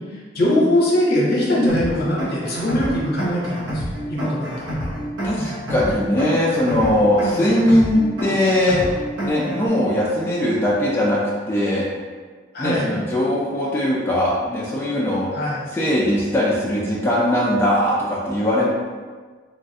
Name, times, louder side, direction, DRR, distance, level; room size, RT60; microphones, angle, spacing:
voice 1, 0.3-3.8 4.1-4.5 12.5-12.9 15.3-15.7, left 1 dB, 55° left, -5 dB, 0.8 m, -21 dB
sound 1, 1.7-9.7, equal, 75° right, 0.8 m, -28 dB
voice 2, 5.2-8.8 9.2-11.2 11.5-11.8 12.6-15.3 15.7-18.7, left 1 dB, 15° left, -6 dB, 0.4 m, -20 dB
3.1 x 2.4 x 2.7 m, 1.5 s
head